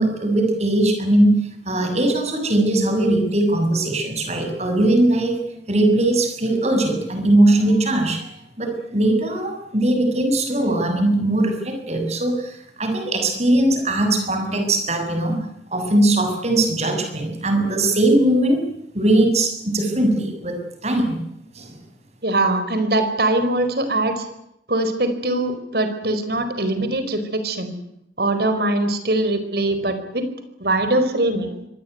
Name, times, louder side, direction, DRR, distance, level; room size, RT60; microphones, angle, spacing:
voice 1, 0.0-5.4 5.7-8.3 8.6-15.5 15.7-18.6 18.9-21.2 21.5-21.7, right 1 dB, 35° right, 5 dB, 7.2 m, -20 dB
voice 2, 22.2-24.2 24.7-27.7 28.2-30.3 30.6-31.6, right 2 dB, 60° right, 9 dB, 4.8 m, -22 dB
25.0 x 20.0 x 9.5 m, 0.79 s
head